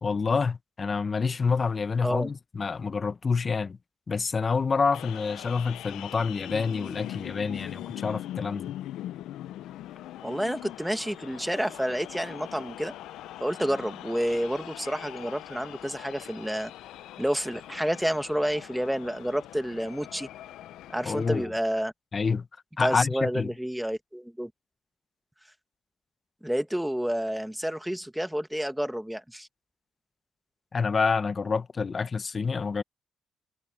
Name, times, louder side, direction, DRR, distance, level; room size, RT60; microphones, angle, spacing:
voice 1, 0.0-3.8 4.1-8.7 21.1-21.5 22.1-22.5 22.8-23.5 30.7-32.8, left 5 dB, 35° left, 0.8 m, -27 dB
sound 1, 4.9-21.5, left 13 dB, 85° left, 0.5 m, -42 dB
voice 2, 10.2-12.9 13.4-16.7 17.2-20.3 20.9-21.9 22.8-24.5 26.4-29.5, equal, 5° right, 1.9 m, -29 dB
cardioid pair, 90°, 0 cm